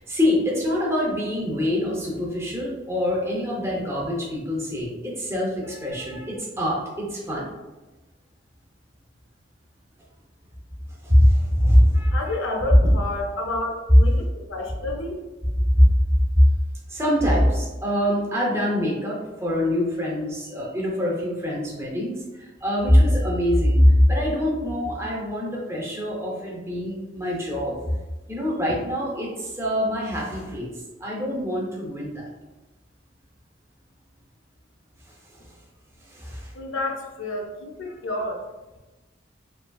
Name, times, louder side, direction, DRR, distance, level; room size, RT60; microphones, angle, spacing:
voice 1, 0.1-7.5 11.0-12.2 15.8-15.9 16.4-16.5 16.9-28.0 28.3-30.7 31.0-32.2 36.0-36.5, equal, 15° right, -3 dB, 0.5 m, -23 dB
voice 2, 12.1-14.2 14.5-15.2 36.5-38.4, left 2 dB, 90° left, 2 dB, 0.5 m, -30 dB
2.9 x 2.5 x 2.2 m, 1.1 s
head